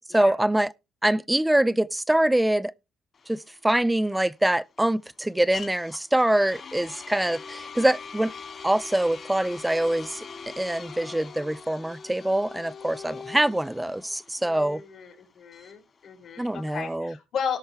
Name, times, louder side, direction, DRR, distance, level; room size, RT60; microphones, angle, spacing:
voice 1, 0.1-0.7 1.0-2.7 3.3-8.3 8.6-14.8 16.4-17.1, right 1 dB, 10° right, 0.4 m, -24 dB
sound 1, 3.1-17.0, left 5 dB, 45° left, 2.1 m, -43 dB
voice 2, 14.4-17.6, left 7 dB, 70° left, 3.2 m, -35 dB
17.5 x 6.5 x 3.3 m
cardioid pair, 90°, 0 cm